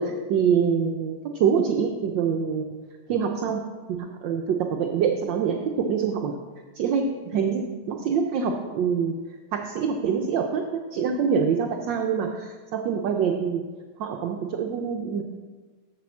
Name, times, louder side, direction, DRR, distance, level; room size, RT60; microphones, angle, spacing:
voice 1, 0.0-2.7 3.1-3.6 3.9-6.3 6.7-7.1 7.3-9.1 9.5-13.6 14.0-15.2, right 6 dB, 70° right, 3 dB, 1.3 m, -25 dB
7.5 x 6.0 x 7.2 m, 1.4 s
omnidirectional pair, 2.3 m